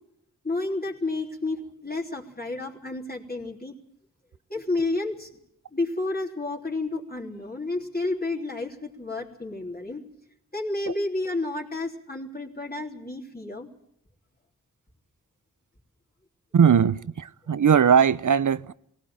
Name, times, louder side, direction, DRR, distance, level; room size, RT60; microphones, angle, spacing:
voice 1, 0.4-3.7 4.5-5.4 5.7-10.0 10.5-13.7, left 2 dB, 25° left, 3.4 m, -31 dB
voice 2, 16.5-18.7, right 7 dB, 55° right, 0.8 m, -19 dB
18.0 x 17.5 x 8.8 m
cardioid pair, 55°, 37 cm